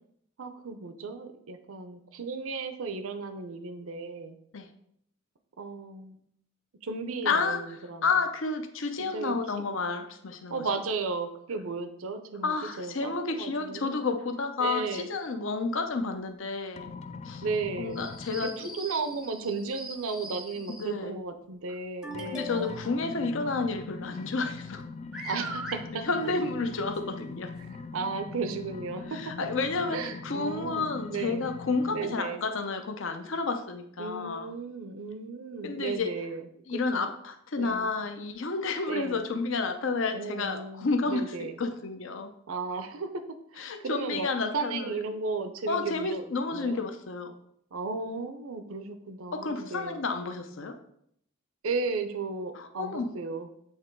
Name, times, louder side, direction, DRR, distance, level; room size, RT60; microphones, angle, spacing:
voice 1, 0.4-4.4 5.6-6.2 6.8-8.1 9.1-9.6 10.5-14.0 14.6-15.1 17.4-18.1 18.4-22.9 25.2-26.0 27.9-29.5 29.9-31.4 31.9-32.4 34.0-37.1 37.6-37.9 38.9-39.2 40.1-41.5 42.5-43.1 43.5-46.8 47.7-50.0 51.6-53.5, right 4 dB, 75° right, 8 dB, 0.6 m, -35 dB
voice 2, 7.2-7.6 8.0-10.6 12.4-16.9 17.2-17.4 17.8-18.8 20.8-21.1 22.3-24.8 26.0-27.5 29.1-34.5 35.6-36.1 36.7-42.3 43.6-45.0 45.7-47.3 49.3-50.8 52.5-53.1, left 4 dB, 60° left, 6 dB, 0.7 m, -31 dB
sound 1, 16.8-18.6 22.1-32.2, left 4 dB, 30° left, 0.3 m, -42 dB
sound 2, 17.9-20.9 22.0-23.0 24.7-24.8 25.1-25.8 27.0-27.1 27.6-27.7 28.5-28.6, equal, 5° right, 0.6 m, -40 dB
8.1 x 3.0 x 4.5 m, 0.70 s
head